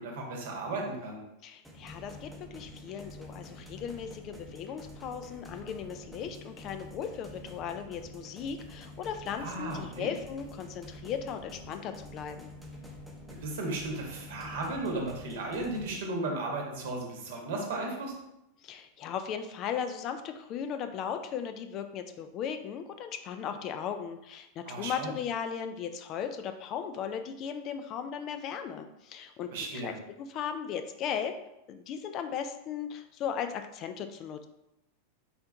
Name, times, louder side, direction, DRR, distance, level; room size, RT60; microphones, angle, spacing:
voice 1, 0.0-1.2 9.4-10.1 13.4-18.1 24.6-25.1 29.5-29.9, right 2 dB, 55° right, 0 dB, 1.0 m, -35 dB
voice 2, 1.4-12.5 18.6-29.9 30.3-31.3 31.7-34.4, left 8 dB, 35° left, 8 dB, 0.3 m, -37 dB
sound 1, 1.6-16.0, left 1 dB, ahead, 0.7 m, -47 dB
4.3 x 3.8 x 2.3 m, 0.87 s
figure-of-eight pair, 90°, 0 cm